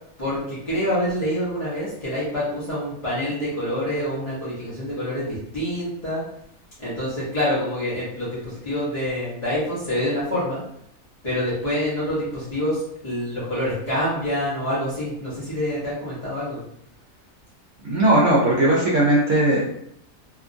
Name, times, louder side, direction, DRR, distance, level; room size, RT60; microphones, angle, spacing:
voice 1, 0.2-6.2 6.8-10.6 11.2-16.6, equal, 30° left, -11 dB, 0.8 m, -26 dB
voice 2, 17.8-19.6, right 1 dB, 60° right, -6 dB, 0.9 m, -18 dB
2.9 x 2.4 x 2.5 m, 0.74 s
omnidirectional pair, 1.6 m